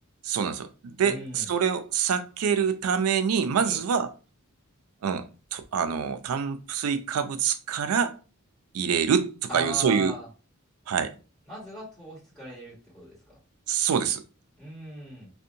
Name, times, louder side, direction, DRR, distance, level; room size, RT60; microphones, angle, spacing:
voice 1, 0.2-4.1 5.0-8.1 8.7-10.1 10.9-11.1 13.7-14.2, right 7 dB, 85° right, 0.4 m, -26 dB
voice 2, 1.0-1.5 3.6-3.8 9.5-10.3 11.5-13.1 14.6-15.3, right 1 dB, 10° left, 1.4 m, -38 dB
2.7 x 2.1 x 2.5 m
head